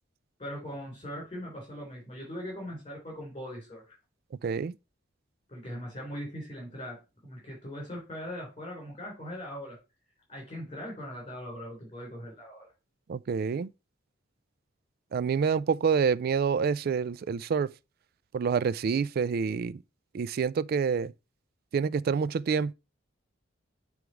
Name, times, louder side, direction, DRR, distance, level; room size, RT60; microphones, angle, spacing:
voice 1, 0.4-3.9 5.5-9.8 10.3-12.7, equal, 30° left, 3.3 m, -40 dB
voice 2, 4.4-4.7 13.1-13.7 15.1-17.7 18.3-19.8 20.1-21.1 21.7-22.7, right 6 dB, 50° right, 0.3 m, -27 dB
7.9 x 3.5 x 4.6 m
head